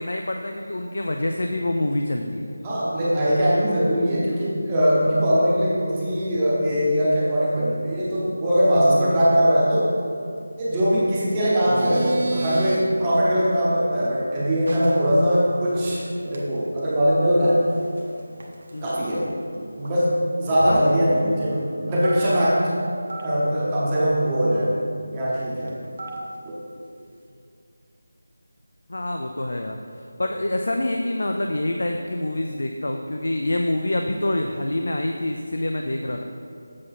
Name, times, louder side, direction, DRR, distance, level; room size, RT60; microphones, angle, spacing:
voice 1, 0.0-2.5 18.7-19.0 20.6-21.0 28.9-29.8 30.2-36.2, left 1 dB, 70° left, 3 dB, 0.5 m, -26 dB
voice 2, 2.6-9.9 10.6-17.6 18.8-19.3 19.8-20.1 20.4-22.7 23.2-24.7 25.1-25.7 26.5-26.6, equal, 15° right, -8 dB, 0.8 m, -21 dB
sound 1, 11.5-12.8 14.7-14.9 15.3-15.4 15.7-15.9 16.3-16.4 16.8-16.9 17.6-18.9 19.2-19.3 19.5-19.6 19.8-19.9 20.5-21.0 21.9-22.5 23.1-23.2 25.7-26.3, right 3 dB, 45° right, 0.9 m, -33 dB
7.5 x 5.9 x 4.1 m, 2.4 s
figure-of-eight pair, 175°, 0 cm